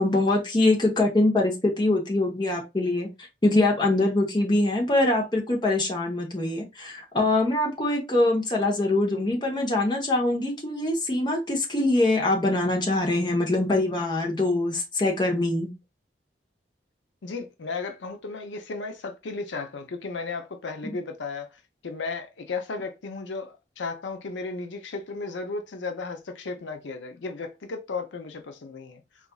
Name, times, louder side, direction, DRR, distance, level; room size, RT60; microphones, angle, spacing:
voice 1, 0.0-3.1 3.4-15.7 20.8-20.9, left 2 dB, 25° left, 0.8 m, -23 dB
voice 2, 17.2-29.0, left 4 dB, 80° left, 0.5 m, -34 dB
3.9 x 2.4 x 2.2 m
head